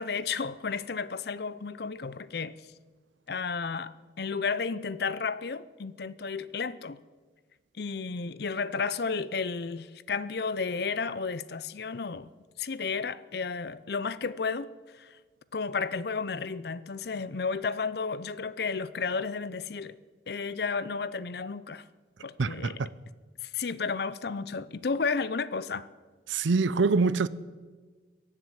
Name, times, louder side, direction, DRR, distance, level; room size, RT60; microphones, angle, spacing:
voice 1, 0.0-2.5 3.3-7.0 7.8-12.3 12.6-14.7 14.9-15.2 15.5-20.0 20.3-21.8 22.2-22.8 23.4-25.9, left 5 dB, 55° left, 0.6 m, -32 dB
voice 2, 22.4-22.9 26.3-27.3, right 4 dB, 80° right, 0.6 m, -25 dB
22.5 x 7.6 x 7.9 m
head